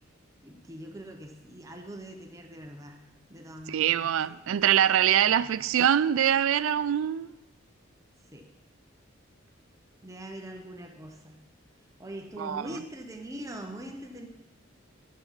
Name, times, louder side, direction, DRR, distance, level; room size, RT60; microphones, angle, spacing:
voice 1, 0.4-3.0 3.3-4.4 8.3-8.5 10.0-11.4 12.0-14.3, right 1 dB, 15° right, 0.7 m, -42 dB
voice 2, 3.7-7.3 12.4-12.7, right 10 dB, 80° right, 0.3 m, -24 dB
12.0 x 10.5 x 4.0 m
head